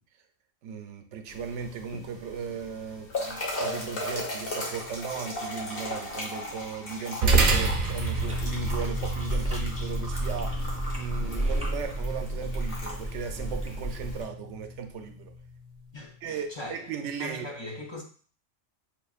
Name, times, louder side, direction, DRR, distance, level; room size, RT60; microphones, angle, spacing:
voice 1, 0.6-10.6 11.0-15.3 16.2-17.5, right 6 dB, 80° right, 5 dB, 0.9 m, -37 dB
sound 1, 1.3-14.3, left 1 dB, 50° left, 1.2 m, -38 dB
sound 2, 7.2-15.9, right 3 dB, 55° right, 0.7 m, -30 dB
Chewing mastication, 8.1-14.2, right 1 dB, 5° right, 0.9 m, -32 dB
voice 2, 15.9-16.9 17.2-18.0, left 1 dB, 30° left, -1 dB, 0.5 m, -40 dB
5.9 x 2.5 x 2.3 m, 0.43 s
omnidirectional pair, 1.2 m